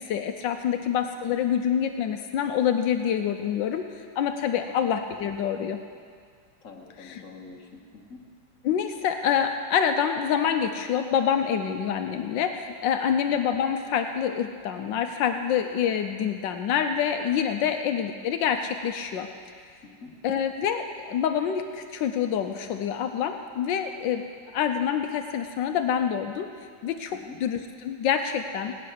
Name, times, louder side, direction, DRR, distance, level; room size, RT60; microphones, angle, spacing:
voice 1, 0.0-5.8 7.0-7.2 8.6-19.3 20.2-24.3 24.5-26.5 26.8-28.8, left 8 dB, 85° left, 6 dB, 1.4 m, -26 dB
voice 2, 6.6-8.2 19.8-20.1 27.1-27.4, left 4 dB, 45° left, 0 dB, 1.8 m, -45 dB
18.5 x 6.8 x 9.6 m, 2.1 s
omnidirectional pair, 2.0 m